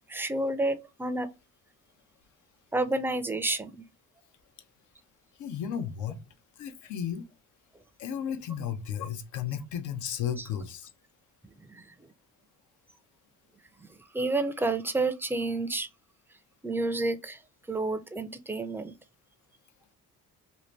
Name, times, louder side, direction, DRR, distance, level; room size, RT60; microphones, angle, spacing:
voice 1, 0.1-1.3 2.7-3.8 10.4-10.5 11.4-12.1 13.8-15.9 16.6-17.4 17.7-18.9, right 2 dB, 5° right, 0.4 m, -30 dB
voice 2, 5.4-6.2 6.6-7.2 8.0-10.9, left 8 dB, 80° left, 0.7 m, -34 dB
2.8 x 2.5 x 3.1 m
cardioid pair, 90°, 30 cm